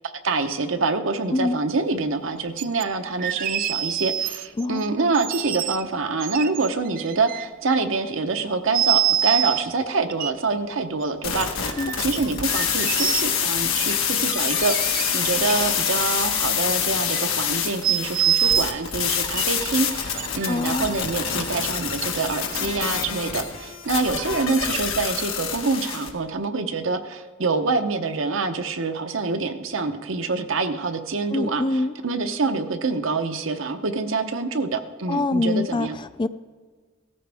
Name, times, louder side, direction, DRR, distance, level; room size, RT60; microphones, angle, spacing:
voice 1, 0.2-35.9, right 3 dB, 70° right, 7 dB, 0.8 m, -26 dB
sound 1, 2.6-2.8 3.2-4.6 5.1-5.8 6.2-7.8 8.7-9.6 10.1-10.3 11.4-12.0 12.5-13.5 14.4-15.5 15.8-16.7 17.1-17.3 17.8-18.7 19.4-19.5 20.2-20.5, right 10 dB, 45° right, 0.4 m, -25 dB
voice 2, 4.6-5.0 11.8-12.0 20.5-21.0 31.3-31.9 35.1-36.3, left 2 dB, 25° left, 13 dB, 0.3 m, -25 dB
sound 2, 11.2-26.1, left 8 dB, 85° left, 1.5 m, -26 dB
16.5 x 14.0 x 3.5 m, 1.5 s
head